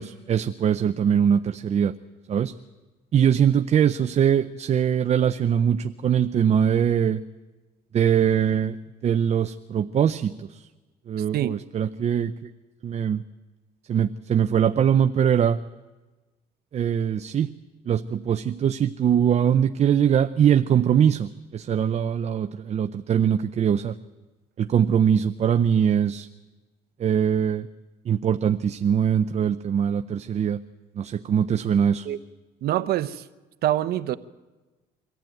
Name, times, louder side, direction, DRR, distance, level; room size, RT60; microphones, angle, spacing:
voice 1, 0.0-1.9 2.3-2.5 3.1-7.2 7.9-8.8 9.0-10.7 11.1-12.5 12.8-13.2 13.9-15.6 16.7-17.5 17.9-24.0 24.6-26.3 27.0-27.7 28.1-30.6 31.0-32.1, right 8 dB, 40° right, 0.6 m, -22 dB
voice 2, 32.6-33.2 33.6-34.2, right 13 dB, 65° right, 0.9 m, -25 dB
24.0 x 15.0 x 9.1 m
cardioid pair, 110°, 17 cm